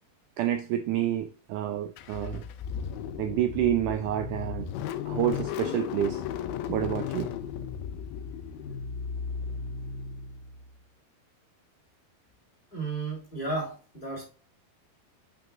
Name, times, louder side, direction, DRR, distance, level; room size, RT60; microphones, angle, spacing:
voice 1, 0.4-2.4 3.2-4.7 5.1-6.2 6.7-7.3, right 11 dB, 85° right, 1.8 m, -28 dB
Car / Engine starting, 2.0-10.7, left 8 dB, 90° left, 2.7 m, -35 dB
voice 2, 12.7-14.2, right 3 dB, 15° left, 3.0 m, -33 dB
9.0 x 6.1 x 2.5 m
omnidirectional pair, 4.3 m